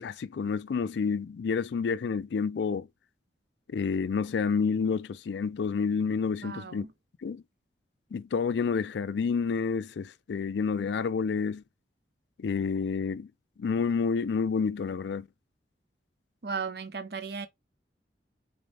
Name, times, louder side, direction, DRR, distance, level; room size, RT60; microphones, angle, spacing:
voice 1, 0.0-2.9 3.7-6.9 7.2-7.4 8.1-11.6 12.4-13.3 13.6-15.3, left 5 dB, 75° left, 0.4 m, -29 dB
voice 2, 6.4-6.9 16.4-17.5, right 5 dB, 60° right, 0.6 m, -36 dB
4.2 x 3.6 x 3.3 m
head